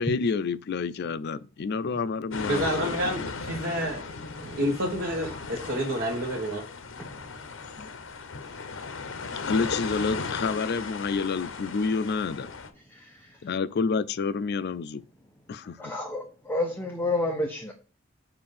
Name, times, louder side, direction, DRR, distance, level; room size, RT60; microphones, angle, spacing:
voice 1, 0.0-3.3 7.7-8.0 9.5-12.5 13.4-15.0 15.5-15.9, left 4 dB, 55° left, 0.4 m, -29 dB
sound 1, 2.3-12.7, left 4 dB, 75° left, 0.8 m, -36 dB
voice 2, 2.4-4.1 4.4-6.6, equal, 65° right, 1.1 m, -29 dB
voice 3, 15.8-17.7, left 2 dB, 10° left, 0.7 m, -30 dB
6.8 x 2.6 x 5.4 m
head